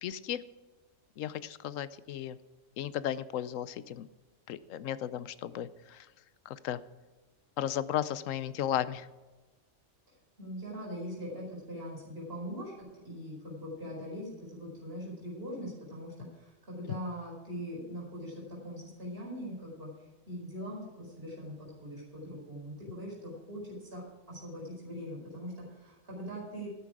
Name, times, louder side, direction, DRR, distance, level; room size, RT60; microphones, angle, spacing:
voice 1, 0.0-0.4 1.2-2.4 2.8-4.1 4.5-6.1 6.5-6.8 7.6-9.1 16.9-17.0, left 11 dB, 75° left, 16 dB, 1.0 m, -35 dB
voice 2, 10.4-19.9 20.3-24.0 24.3-26.7, equal, 45° right, -3 dB, 5.2 m, -41 dB
13.0 x 9.8 x 4.9 m, 1.2 s
omnidirectional pair, 1.4 m